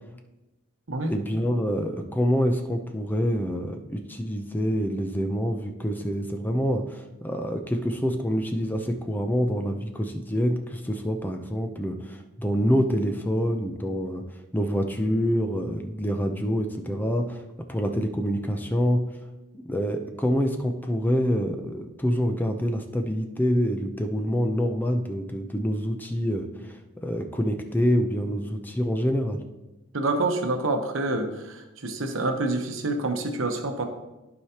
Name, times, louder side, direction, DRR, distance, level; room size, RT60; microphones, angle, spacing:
voice 1, 1.1-14.2 14.5-17.4 17.7-19.0 19.5-29.4, equal, 10° left, 5 dB, 0.6 m, -26 dB
voice 2, 29.9-33.8, right 2 dB, 65° right, 5 dB, 1.0 m, -27 dB
14.5 x 4.8 x 2.9 m, 1.0 s
head